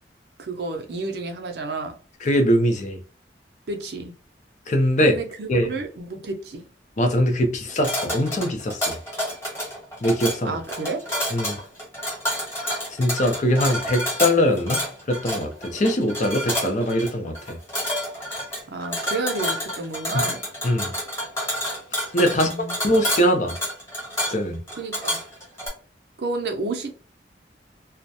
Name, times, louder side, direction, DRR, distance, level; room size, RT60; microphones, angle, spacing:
voice 1, 0.4-2.0 3.7-4.2 5.0-6.7 10.4-11.1 18.7-20.4 22.3-22.8 24.7-25.2 26.2-27.0, right 3 dB, 65° right, 0.5 m, -31 dB
voice 2, 2.2-3.0 4.7-5.2 5.5-5.7 7.0-9.0 10.0-10.6 11.3-11.6 13.0-17.6 20.6-20.9 22.1-22.5 22.8-23.6 24.3-24.6, equal, 45° left, 0.5 m, -22 dB
sound 1, 7.7-25.7, equal, 15° left, 1.0 m, -29 dB
2.3 x 2.1 x 2.7 m
head